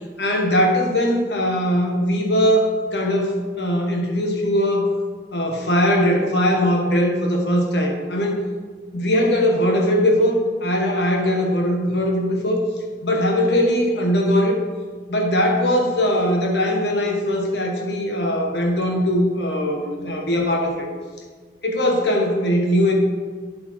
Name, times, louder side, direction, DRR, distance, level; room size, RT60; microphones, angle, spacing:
voice 1, 0.2-4.9 5.3-8.4 8.9-12.7 13.0-14.6 15.1-20.9 21.6-22.9, equal, 70° left, 2 dB, 1.5 m, -20 dB
8.6 x 7.3 x 4.5 m, 1.5 s
head